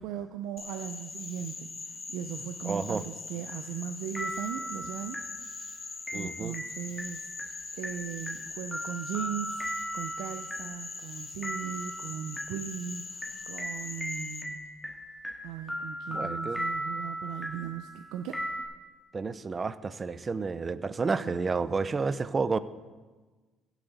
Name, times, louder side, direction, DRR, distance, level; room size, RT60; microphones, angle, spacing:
voice 1, 0.0-5.2 6.1-9.6 9.9-14.7 15.4-18.4, right 9 dB, 85° right, 7 dB, 0.5 m, -38 dB
Frog, 0.6-14.4, left 3 dB, 30° left, 1.2 m, -42 dB
voice 2, 2.6-3.0 6.1-6.5 16.1-16.6 19.1-22.6, right 4 dB, 30° right, 15 dB, 0.5 m, -30 dB
sound 1, 3.5-18.6, equal, 5° left, 2.1 m, -38 dB
16.0 x 7.2 x 4.0 m, 1.3 s
cardioid pair, 110°, 0 cm